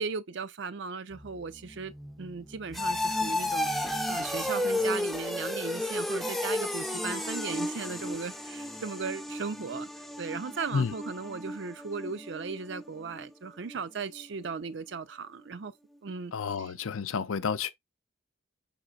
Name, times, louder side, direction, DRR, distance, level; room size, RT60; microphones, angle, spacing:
voice 1, 0.0-1.9 2.2-9.9 10.2-15.7 16.0-16.3 16.6-16.7, right 5 dB, 60° right, 0.5 m, -37 dB
sound 1, 1.1-13.8 14.1-14.5 14.9-15.0, left 1 dB, ahead, 0.4 m, -33 dB
voice 2, 16.3-17.7, left 6 dB, 90° left, 0.5 m, -30 dB
5.7 x 3.8 x 2.4 m
head